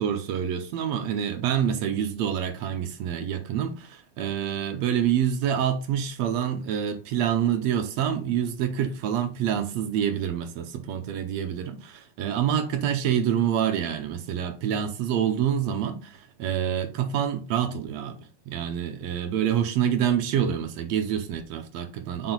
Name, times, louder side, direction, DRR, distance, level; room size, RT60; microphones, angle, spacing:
voice 1, 0.0-22.3, right 9 dB, 75° right, 1.7 m, -27 dB
6.0 x 4.7 x 3.9 m
omnidirectional pair, 3.5 m